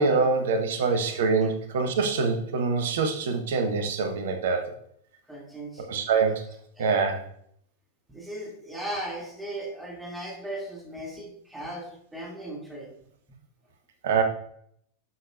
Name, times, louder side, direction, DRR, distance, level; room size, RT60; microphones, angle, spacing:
voice 1, 0.0-4.7 5.9-6.5 6.8-7.3 14.0-14.2, right 4 dB, 60° right, 6 dB, 1.0 m, -25 dB
voice 2, 5.3-6.0 6.8-7.0 8.1-12.9, right 1 dB, 10° right, -4 dB, 2.5 m, -37 dB
9.8 x 6.7 x 2.5 m, 0.69 s
figure-of-eight pair, 90°, 0 cm